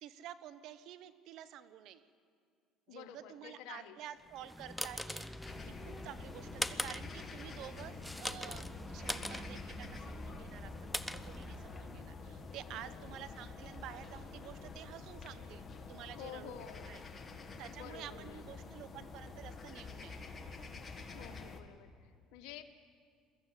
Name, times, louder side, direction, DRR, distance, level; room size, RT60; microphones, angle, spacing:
voice 1, 0.0-2.1 2.9-5.3 5.6-16.6 16.9-17.0 17.6-20.2, right 11 dB, 65° right, 13 dB, 1.0 m, -50 dB
voice 2, 2.9-4.0 12.7-13.2 16.2-17.0 17.7-18.6 21.1-22.6, left 9 dB, 80° left, 8 dB, 1.3 m, -51 dB
sound 1, 4.3-12.0, equal, 5° left, 0.7 m, -43 dB
sound 2, 5.4-21.6, left 4 dB, 30° left, 2.0 m, -48 dB
22.5 x 14.0 x 8.3 m, 2.2 s
supercardioid pair, 90°, 0 cm